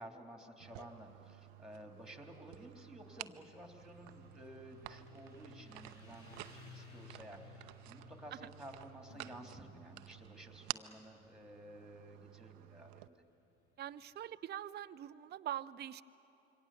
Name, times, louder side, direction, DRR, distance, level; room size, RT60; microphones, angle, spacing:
voice 1, 0.0-13.2, equal, ahead, 3 dB, 3.1 m, -53 dB
sound 1, 0.6-13.1, right 19 dB, 65° right, 0.7 m, -51 dB
Motorcycle, 3.0-14.1, left 6 dB, 40° left, 7.1 m, -61 dB
Piano, 9.1-11.8, left 5 dB, 60° left, 1.9 m, -64 dB
voice 2, 13.8-16.0, right 11 dB, 30° right, 13 dB, 0.6 m, -43 dB
26.5 x 24.0 x 7.1 m, 2.9 s
figure-of-eight pair, 65°, 35 cm